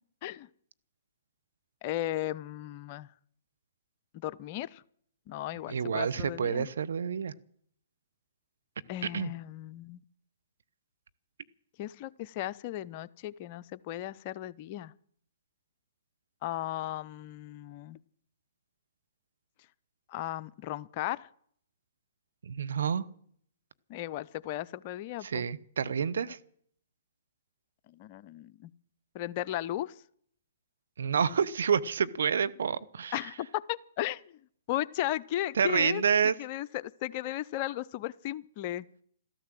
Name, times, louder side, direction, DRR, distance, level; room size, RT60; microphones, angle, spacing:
voice 1, 1.8-3.1 4.1-4.8 5.3-6.7 8.9-10.0 11.8-14.9 16.4-18.0 20.1-21.3 23.9-25.4 27.9-28.7 29.1-29.9 33.1-34.2 34.7-38.8, left 14 dB, 40° left, 15 dB, 0.6 m, -36 dB
voice 2, 5.7-7.3 9.1-9.3 22.4-23.0 25.2-26.4 31.0-33.2 35.6-36.3, right 7 dB, 70° right, 13 dB, 0.9 m, -28 dB
13.5 x 13.0 x 7.7 m, 0.63 s
hypercardioid pair, 125°, 0 cm